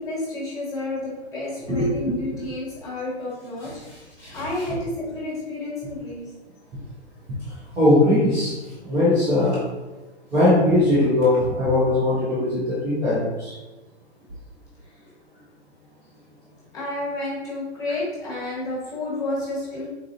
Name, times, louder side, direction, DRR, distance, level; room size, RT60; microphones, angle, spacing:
voice 1, 0.0-3.7 4.3-6.3 15.0-15.1 16.7-19.9, left 2 dB, 10° left, -6 dB, 1.4 m, -30 dB
voice 2, 1.7-2.2 3.6-4.4 4.7-4.8 7.8-9.6 10.3-13.6, left 1 dB, 10° right, -11 dB, 0.5 m, -20 dB
3.9 x 2.3 x 2.7 m, 1.2 s
hypercardioid pair, 135°, 34 cm